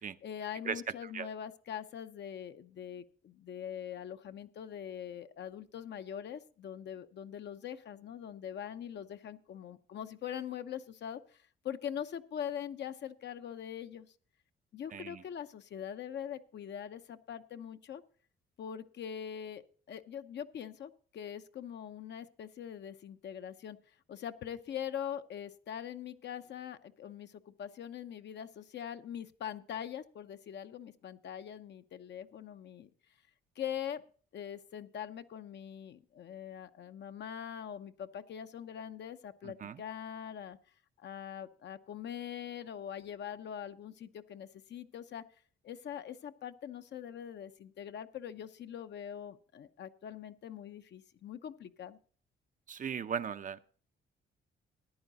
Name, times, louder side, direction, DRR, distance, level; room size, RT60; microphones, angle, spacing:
voice 1, 0.2-14.1 14.7-18.0 18.6-23.8 24.1-32.9 33.6-34.0 34.3-40.6 41.0-45.2 45.6-52.0, left 9 dB, 60° left, 9 dB, 0.8 m, -43 dB
voice 2, 14.9-15.2 39.4-39.8 52.7-53.6, right 7 dB, 40° right, 12 dB, 0.6 m, -38 dB
14.0 x 10.0 x 4.0 m, 0.43 s
cardioid pair, 90°, 20 cm